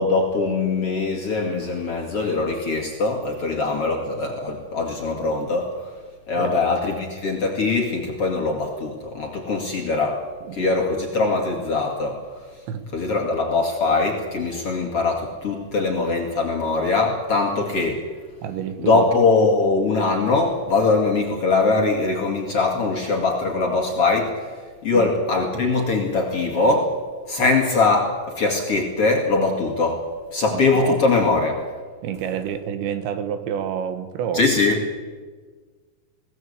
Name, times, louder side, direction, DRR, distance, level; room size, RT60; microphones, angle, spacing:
voice 1, 0.0-6.0 6.3-10.2 10.5-12.3 12.9-18.1 18.8-27.0 27.3-31.6 34.3-34.8, left 3 dB, 40° left, 1 dB, 2.5 m, -22 dB
voice 2, 18.4-19.1 24.9-25.1 30.5-31.0 32.0-34.5, right 8 dB, 75° right, 10 dB, 3.6 m, -28 dB
22.0 x 18.0 x 8.3 m, 1.5 s
omnidirectional pair, 5.2 m